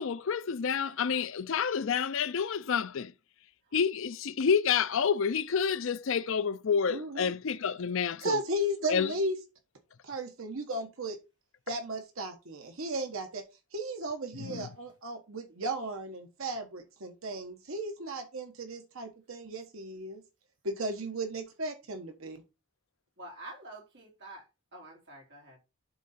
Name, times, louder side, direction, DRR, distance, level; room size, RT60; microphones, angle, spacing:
voice 1, 0.0-3.1 3.7-8.4 8.9-9.1 14.4-14.7, left 6 dB, 65° left, 0.5 m, -29 dB
voice 2, 6.9-7.3 8.2-9.3 10.0-11.2 11.7-13.4 13.7-20.2 20.6-22.4, right 1 dB, 70° right, 1.2 m, -35 dB
voice 3, 23.2-24.4 24.7-25.6, right 2 dB, 50° right, 3.4 m, -47 dB
11.5 x 3.8 x 4.2 m
head